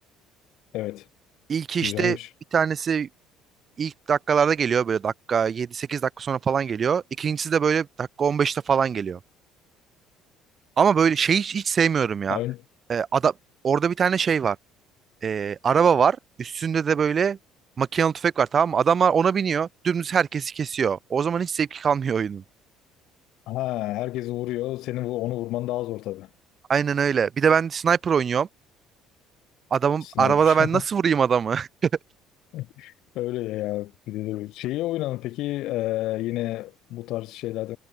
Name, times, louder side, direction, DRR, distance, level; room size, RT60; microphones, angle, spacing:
voice 1, 0.7-1.1 1.8-2.3 12.3-12.6 23.5-26.3 30.0-30.8 32.5-37.8, left 16 dB, 65° left, 1.7 m, -30 dB
voice 2, 1.5-2.2 2.5-3.1 3.8-9.2 10.8-12.4 12.9-13.3 13.6-14.6 15.2-17.4 17.8-22.4 26.7-28.5 29.7-31.9, right 7 dB, 30° right, 0.6 m, -22 dB
cardioid pair, 155°, 0 cm